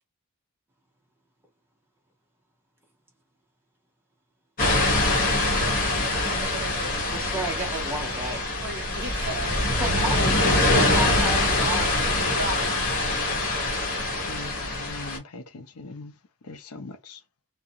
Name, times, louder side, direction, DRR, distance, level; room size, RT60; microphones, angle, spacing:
sound 1, 4.6-15.2, left 2 dB, 40° left, 0.9 m, -24 dB
voice 1, 6.4-7.3 8.6-9.6 10.1-10.7 12.3-12.7, right 2 dB, 50° right, 0.7 m, -36 dB
voice 2, 7.1-8.5 9.8-12.7, right 1 dB, 10° right, 0.5 m, -33 dB
voice 3, 14.3-16.1 16.4-17.2, left 3 dB, 85° left, 0.5 m, -41 dB
2.4 x 2.0 x 2.7 m
head